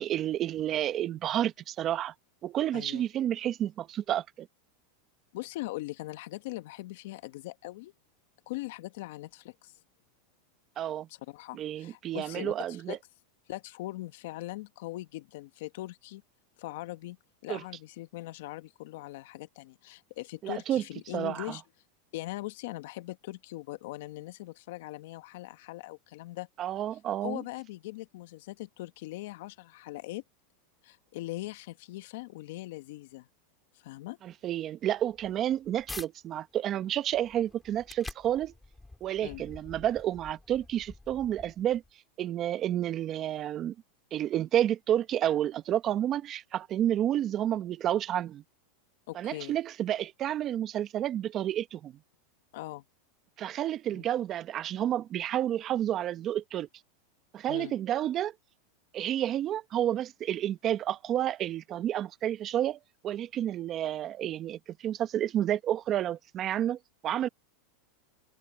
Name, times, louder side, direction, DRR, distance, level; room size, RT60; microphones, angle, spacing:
voice 1, 0.0-2.1 2.4-4.5 10.8-11.1 11.5-13.0 17.5-17.6 20.4-20.8 21.1-21.6 26.6-27.4 34.2-38.5 39.0-41.8 42.2-43.7 44.1-48.4 49.1-52.0 53.4-56.7 57.3-58.3 58.9-67.3, right 11 dB, 35° right, 1.2 m, -30 dB
voice 2, 5.3-7.9 8.5-9.7 11.1-13.0 13.5-16.2 16.6-17.2 17.4-21.6 22.1-26.5 27.2-30.2 30.8-33.3 33.7-34.2 39.2-39.4 49.1-49.6 52.5-52.8 53.9-54.1 57.5-57.7, left 18 dB, 70° left, 1.3 m, -41 dB
sound 1, 35.0-36.1 36.6-41.9, left 2 dB, 5° left, 3.9 m, -48 dB
supercardioid pair, 125°, 0 cm